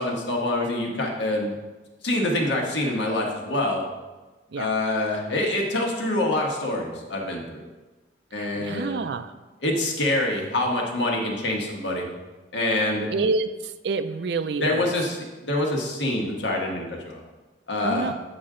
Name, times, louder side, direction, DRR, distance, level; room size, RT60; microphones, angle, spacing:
voice 1, 0.0-1.6 2.0-3.8 4.6-7.7 8.3-9.1 9.6-12.1 12.5-13.1 14.6-17.2 17.7-18.1, left 1 dB, 75° left, 0 dB, 1.4 m, -26 dB
voice 2, 8.4-9.3 13.1-13.5 13.8-14.9 17.8-18.1, right 4 dB, 65° right, 11 dB, 0.4 m, -27 dB
8.7 x 5.2 x 3.8 m, 1.2 s
head